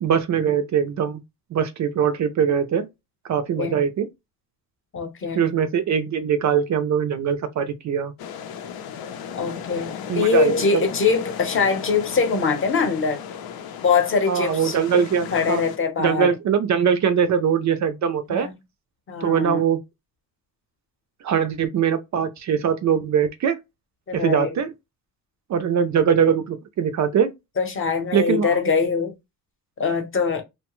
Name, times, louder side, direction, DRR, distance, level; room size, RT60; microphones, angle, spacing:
voice 1, 0.0-1.2 1.5-2.9 3.2-4.1 5.3-8.1 10.1-10.8 14.3-15.6 16.0-18.5 19.2-19.8 21.2-23.6 24.1-24.7 25.5-27.3 28.1-28.5, right 7 dB, 45° right, 0.5 m, -22 dB
voice 2, 4.9-5.5 9.3-13.2 13.8-14.8 15.3-16.3 18.3-18.5 19.1-19.6 24.1-24.6 27.6-29.1 29.8-30.4, left 5 dB, 30° left, 0.8 m, -23 dB
sound 1, 8.2-15.8, left 8 dB, 60° left, 0.6 m, -35 dB
2.7 x 2.2 x 3.0 m
cardioid pair, 125°, 41 cm